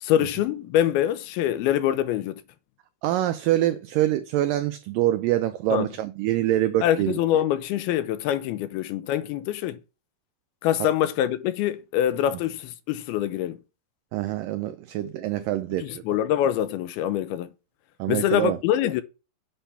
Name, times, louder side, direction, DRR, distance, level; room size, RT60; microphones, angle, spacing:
voice 1, 0.0-2.4 5.7-5.9 6.8-9.8 10.6-13.6 15.8-17.5 18.1-19.0, left 11 dB, 85° left, 2.6 m, -24 dB
voice 2, 3.0-7.2 14.1-16.0 18.0-18.6, right 14 dB, 85° right, 1.9 m, -25 dB
8.1 x 5.7 x 3.4 m
omnidirectional pair, 4.4 m